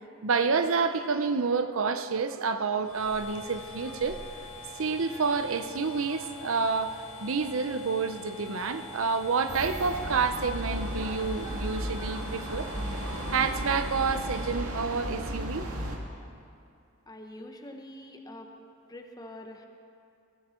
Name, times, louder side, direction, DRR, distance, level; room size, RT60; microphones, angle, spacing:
voice 1, 0.2-4.3 4.8-12.7 13.3-15.7, right 5 dB, 70° right, 10 dB, 0.7 m, -29 dB
sound 1, 2.8-14.5, left 2 dB, 90° left, 2.4 m, -45 dB
sound 2, 9.5-16.0, right 1 dB, 90° right, 1.9 m, -35 dB
voice 2, 17.1-18.5 18.9-19.7, left 1 dB, 20° left, 4 dB, 1.1 m, -44 dB
18.0 x 16.0 x 4.4 m, 2.5 s
head